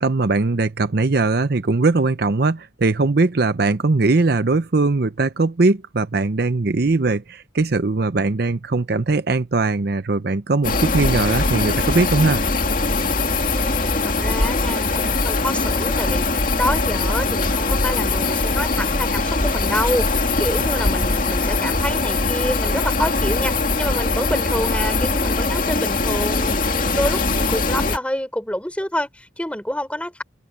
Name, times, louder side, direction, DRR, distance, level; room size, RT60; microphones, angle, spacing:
voice 1, 0.0-12.4 20.6-20.7, right 3 dB, 55° right, 0.7 m, -20 dB
sound 1, 10.6-28.0, left 3 dB, 45° left, 2.4 m, -21 dB
voice 2, 13.3-30.2, left 1 dB, 5° left, 3.9 m, -27 dB
head